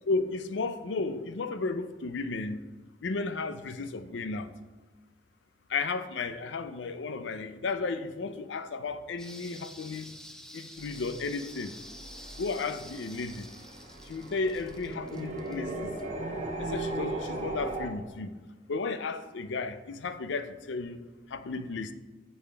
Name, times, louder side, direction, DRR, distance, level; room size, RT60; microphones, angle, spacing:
voice 1, 0.1-2.6 3.0-4.5 5.7-10.1 10.5-11.7 12.4-13.5 14.0-15.9 16.6-18.3 18.7-21.0 21.3-21.9, left 3 dB, 85° left, 0.5 m, -33 dB
sound 1, 9.2-16.2 16.6-16.7, equal, 5° left, 0.4 m, -49 dB
sound 2, 10.8-17.9, right 2 dB, 40° right, 0.9 m, -38 dB
8.6 x 5.5 x 3.3 m
head